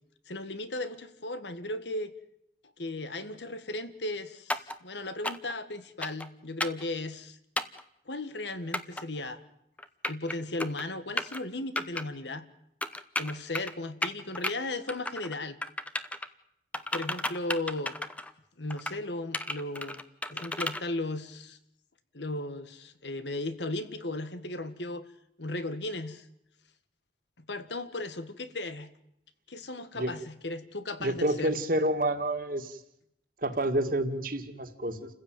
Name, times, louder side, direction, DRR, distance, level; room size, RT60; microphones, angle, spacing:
voice 1, 0.3-2.1 2.8-7.4 8.1-9.4 10.1-12.5 13.2-15.6 16.9-18.0 18.6-20.0 20.3-21.6 22.1-25.1 25.4-26.3 27.5-28.9 29.5-31.5, left 2 dB, 80° left, 12 dB, 1.8 m, -36 dB
sound 1, 4.5-4.8 5.2-5.5 6.0-6.3 6.6-6.8 7.6-7.8 8.7-9.0 9.8-10.3 10.6-10.8 11.2-11.4 11.8-12.0 12.8-13.7 14.0-14.5 14.9-15.4 15.6-16.3 16.7-18.3 18.7-19.0 19.3-20.8, left 1 dB, 10° left, 0.9 m, -33 dB
voice 2, 31.0-32.8 33.4-35.1, right 1 dB, 50° right, 7 dB, 2.2 m, -29 dB
29.5 x 15.5 x 9.2 m, 0.78 s
head